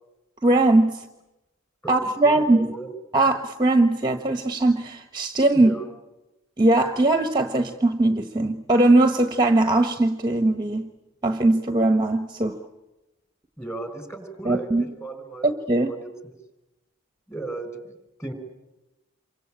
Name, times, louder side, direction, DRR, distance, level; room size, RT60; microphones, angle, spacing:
voice 1, 0.4-1.0 1.9-2.7 3.1-5.7 6.6-10.9 11.2-12.6 14.4-14.8 15.4-15.9, right 2 dB, 20° right, 7 dB, 1.2 m, -20 dB
voice 2, 1.8-2.9 5.5-5.9 13.6-15.5 15.8-16.4 17.3-18.3, right 2 dB, 10° left, 9 dB, 4.9 m, -36 dB
27.5 x 24.5 x 8.8 m, 0.97 s
head